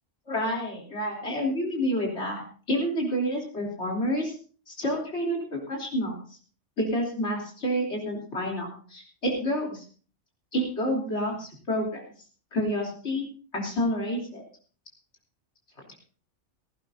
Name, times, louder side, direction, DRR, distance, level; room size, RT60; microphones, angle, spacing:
voice 1, 0.3-4.4 4.7-6.4 6.8-9.8 10.5-12.0 12.5-13.3 13.5-14.4, equal, 70° left, -1 dB, 3.6 m, -29 dB
18.0 x 15.0 x 2.6 m, 0.40 s
omnidirectional pair, 1.2 m